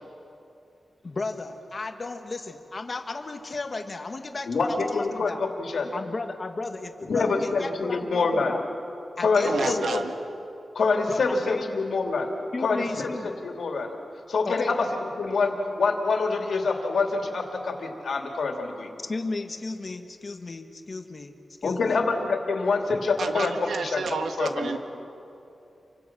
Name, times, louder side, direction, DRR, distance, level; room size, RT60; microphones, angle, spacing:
voice 1, 1.0-5.4 5.9-8.6 9.2-10.0 11.1-11.7 12.5-13.3 14.4-14.7 19.1-21.3 21.6-22.0, left 3 dB, 35° left, 6 dB, 1.5 m, -34 dB
voice 2, 4.5-5.9 7.1-8.6 9.2-10.0 10.7-12.3 12.6-13.9 14.3-14.9 15.2-18.9 21.6-24.0 24.4-24.7, left 4 dB, 70° left, 3 dB, 2.7 m, -26 dB
voice 3, 9.4-10.1 23.2-24.8, right 4 dB, 85° right, 6 dB, 1.5 m, -30 dB
28.0 x 24.5 x 6.1 m, 2.8 s
wide cardioid pair, 165°, 0 cm